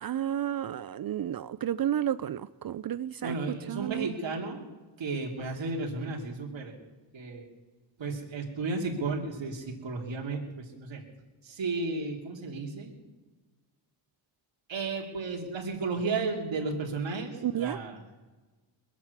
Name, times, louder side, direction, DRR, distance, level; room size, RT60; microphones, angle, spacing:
voice 1, 0.0-3.4 3.7-4.1 17.4-17.8, right 11 dB, 50° right, 16 dB, 0.5 m, -31 dB
voice 2, 3.2-4.7 5.0-6.7 7.1-7.5 8.0-11.0 11.4-12.9 14.7-18.0, right 3 dB, 65° right, 1 dB, 3.0 m, -33 dB
21.5 x 7.5 x 8.3 m, 1.2 s
cardioid pair, 75°, 48 cm